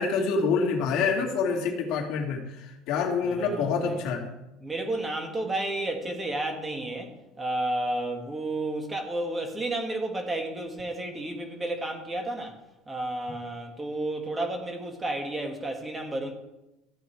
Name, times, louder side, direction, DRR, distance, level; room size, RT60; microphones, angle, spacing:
voice 1, 0.0-2.4 2.9-4.2, left 5 dB, 55° left, 1 dB, 2.4 m, -26 dB
voice 2, 3.2-4.0 4.6-12.5 12.9-16.3, right 1 dB, 15° right, 4 dB, 1.7 m, -32 dB
14.0 x 8.5 x 4.5 m, 0.96 s
cardioid pair, 150°, 0 cm